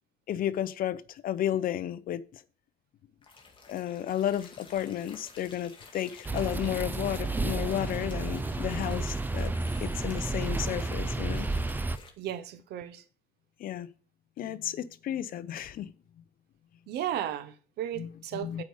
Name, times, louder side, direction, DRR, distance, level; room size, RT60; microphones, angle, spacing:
voice 1, 0.3-2.4 3.7-9.5 9.8-11.5 13.6-13.9 14.4-15.9 17.9-18.1 18.4-18.6, left 11 dB, 60° left, 0.7 m, -32 dB
sound 1, 3.2-12.1, left 4 dB, 30° left, 2.1 m, -51 dB
sound 2, 6.2-12.0, right 3 dB, 10° right, 0.4 m, -31 dB
voice 2, 12.2-13.0 16.9-18.6, right 11 dB, 75° right, 1.0 m, -35 dB
8.1 x 5.0 x 6.5 m
cardioid pair, 110°, 17 cm